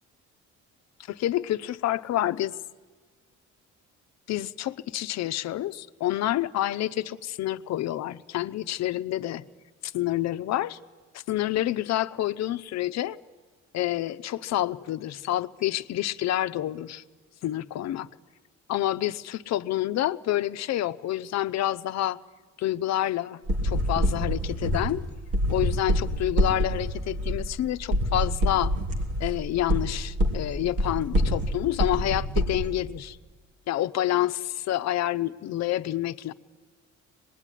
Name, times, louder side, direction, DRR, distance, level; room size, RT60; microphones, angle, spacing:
voice 1, 1.1-2.5 4.3-9.4 9.8-10.8 11.1-13.2 13.7-17.0 17.4-18.1 18.7-22.2 22.6-25.0 25.5-28.8 29.2-33.2 33.7-36.3, left 13 dB, 65° left, 0.8 m, -28 dB
sound 1, 23.5-32.7, equal, 50° right, 3.3 m, -26 dB
25.0 x 20.5 x 10.0 m
cardioid pair, 150°, 30 cm